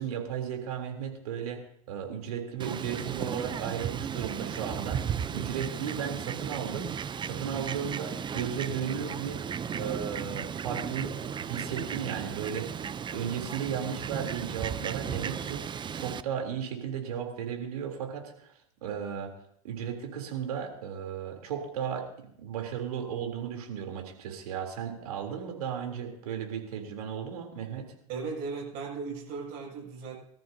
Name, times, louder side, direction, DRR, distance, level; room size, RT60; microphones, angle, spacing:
voice 1, 0.0-1.6 1.9-6.9 7.2-9.4 9.7-12.8 13.1-18.5 18.8-19.3 19.6-27.9, right 8 dB, 85° right, 3 dB, 3.4 m, -35 dB
Fowl, 2.6-16.2, right 7 dB, 25° right, 0.6 m, -35 dB
voice 2, 28.1-30.2, right 4 dB, 60° right, 1 dB, 7.1 m, -37 dB
25.5 x 13.5 x 2.8 m, 0.68 s
hypercardioid pair, 95°, 19 cm